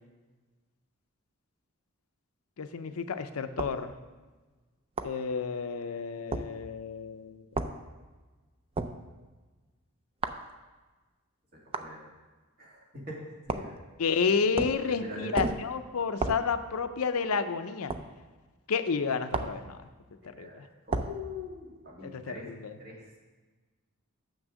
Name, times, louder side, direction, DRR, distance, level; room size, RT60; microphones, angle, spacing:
voice 1, 2.6-3.9 5.0-7.5 14.0-17.9 18.7-19.8 20.4-20.6 22.0-22.7, left 5 dB, 85° left, 9 dB, 0.5 m, -30 dB
sound 1, 3.6-3.8 5.0-5.2 6.3-6.5 7.6-7.8 8.8-9.0 10.2-10.5 11.7-11.9 13.5-13.8 14.6-14.9 15.4-15.7 16.2-16.5 17.9-18.1 19.3-19.6 20.9-21.2, right 3 dB, 25° right, 0.4 m, -32 dB
voice 2, 11.5-12.0 12.6-13.7 14.8-15.4 20.2-22.5 22.8-23.2, left 2 dB, 45° right, -3 dB, 2.1 m, -43 dB
6.8 x 6.3 x 6.2 m, 1.3 s
head